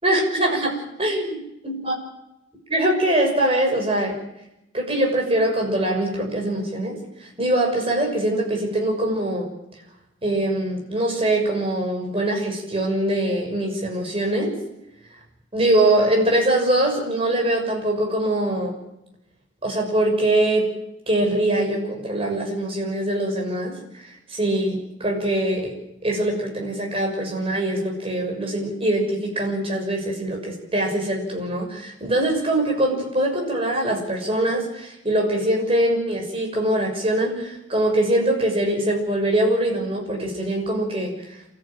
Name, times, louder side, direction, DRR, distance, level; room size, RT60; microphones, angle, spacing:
voice 1, 0.0-1.4 1.8-1.9 2.7-4.2 4.7-9.5 10.2-14.6 15.5-18.7 19.6-20.7 21.1-25.7 26.0-41.3, right 1 dB, 30° right, 0 dB, 6.5 m, -23 dB
28.0 x 14.5 x 9.2 m, 0.86 s
head